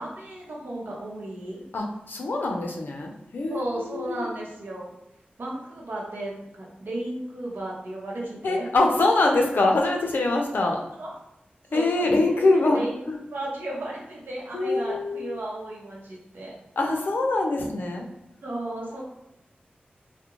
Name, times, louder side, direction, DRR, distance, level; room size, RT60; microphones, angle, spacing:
voice 1, 0.0-1.6 3.5-4.9 5.4-8.6 10.9-11.1 11.7-12.1 12.6-13.0 13.3-16.5 18.4-19.0, right 1 dB, 75° right, -4 dB, 0.8 m, -34 dB
voice 2, 1.7-4.3 8.4-10.8 11.7-12.8 14.5-15.4 16.8-18.1, left 2 dB, 70° left, 1 dB, 0.4 m, -24 dB
2.4 x 2.1 x 2.9 m, 0.89 s
wide cardioid pair, 110°, 3 cm